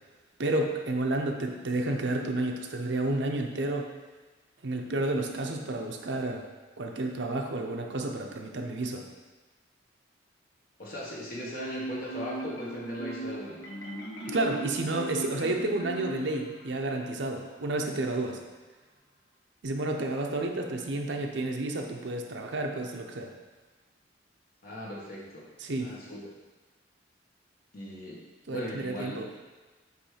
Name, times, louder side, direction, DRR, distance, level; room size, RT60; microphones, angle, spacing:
voice 1, 0.4-3.9 4.6-6.5 6.8-9.0 14.3-18.4 19.6-23.3 25.6-25.9 28.5-29.3, right 2 dB, 65° right, 2 dB, 0.7 m, -31 dB
voice 2, 10.8-13.6 24.6-25.5 25.8-26.2 27.7-28.2 28.5-29.2, left 1 dB, 50° left, -5 dB, 1.3 m, -38 dB
Marimba xylophone, 11.5-16.7, right 2 dB, 75° left, 1.3 m, -37 dB
8.3 x 3.3 x 5.0 m, 1.2 s
head